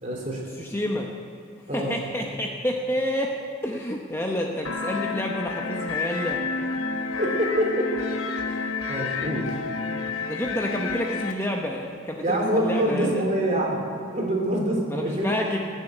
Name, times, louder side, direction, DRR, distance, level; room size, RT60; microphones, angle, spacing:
voice 1, 0.0-0.4 1.7-1.9 7.2-7.9 8.4-8.6 8.9-9.5 12.2-13.8 14.1-15.3, right 1 dB, 35° right, -1 dB, 2.9 m, -25 dB
voice 2, 0.6-1.1 1.7-3.4 3.6-6.4 10.3-13.2 14.9-15.6, equal, 10° left, 0 dB, 0.8 m, -29 dB
sound 1, 4.6-11.3, left 4 dB, 90° left, 1.1 m, -30 dB
19.0 x 7.2 x 9.1 m, 2.3 s
head